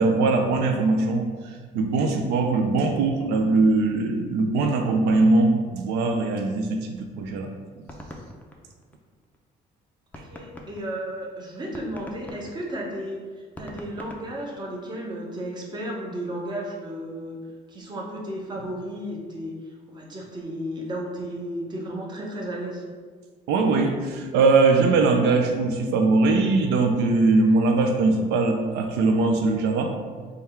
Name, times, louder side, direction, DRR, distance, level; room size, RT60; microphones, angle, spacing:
voice 1, 0.0-7.5 7.8-7.9 23.5-29.9, right 3 dB, 85° right, 4 dB, 0.4 m, -21 dB
sound 1, 7.3-9.4 9.8-9.9 10.1-15.0, left 1 dB, 10° left, 0.4 m, -43 dB
voice 2, 10.3-13.2 13.6-17.4 17.7-19.5 19.9-22.8, right 1 dB, 25° right, -2 dB, 0.8 m, -33 dB
3.4 x 2.3 x 4.3 m, 1.5 s
cardioid pair, 110°, 17 cm